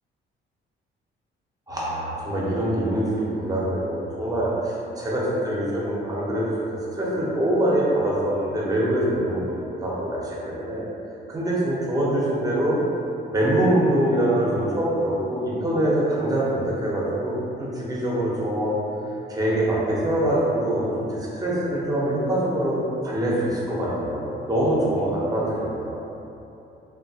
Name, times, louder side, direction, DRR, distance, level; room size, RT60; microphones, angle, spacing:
voice 1, 1.7-10.8 11.3-12.8 13.3-18.8 19.3-26.0, right 1 dB, 20° right, -6 dB, 0.7 m, -24 dB
3.0 x 2.2 x 2.7 m, 2.9 s
cardioid pair, 90°, 20 cm